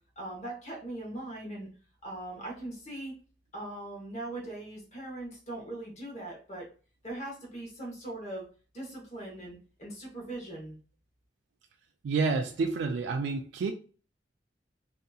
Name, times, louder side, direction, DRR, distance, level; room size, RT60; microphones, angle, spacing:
voice 1, 0.2-1.7 2.0-3.1 3.5-6.7 7.0-8.5 8.7-10.8, right 1 dB, 40° left, -3 dB, 0.9 m, -40 dB
voice 2, 12.0-13.7, right 4 dB, 85° right, 5 dB, 0.3 m, -29 dB
2.7 x 2.6 x 2.3 m, 0.39 s
head